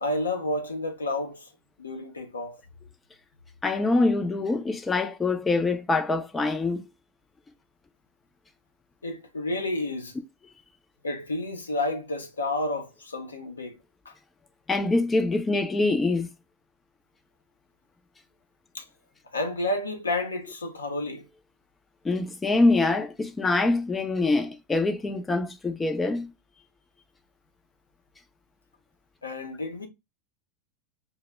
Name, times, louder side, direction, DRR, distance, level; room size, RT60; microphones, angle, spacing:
voice 1, 0.0-1.5 1.8-2.6 9.0-10.1 11.0-13.8 14.1-14.2 18.7-18.8 19.3-21.2 29.2-29.9, left 2 dB, 90° left, 0.6 m, -30 dB
voice 2, 3.6-6.9 14.7-16.3 22.0-26.3, left 3 dB, 15° left, 0.4 m, -24 dB
2.1 x 2.0 x 3.2 m
hypercardioid pair, 90°, 0 cm